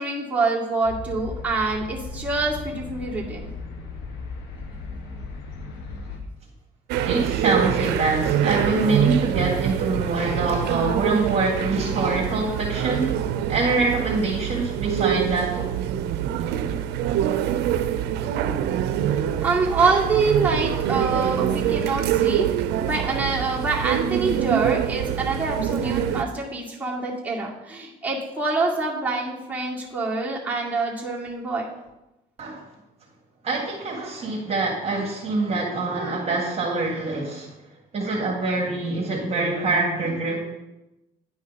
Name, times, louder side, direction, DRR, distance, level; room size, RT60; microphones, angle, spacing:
voice 1, 0.0-3.4 10.2-10.3 16.4-16.7 17.0-17.2 19.1-22.5 22.8-31.6, right 3 dB, 10° right, -5 dB, 2.2 m, -26 dB
sound 1, 0.8-6.2, left 3 dB, 85° left, 1.2 m, -36 dB
sound 2, 6.9-26.2, right 10 dB, 85° right, 0.5 m, -25 dB
voice 2, 7.0-13.1 13.5-15.6 32.4-32.6 33.4-37.5 37.9-40.4, right 3 dB, 40° right, -3 dB, 1.8 m, -25 dB
10.0 x 5.3 x 4.1 m, 0.96 s
cardioid pair, 110°, 17 cm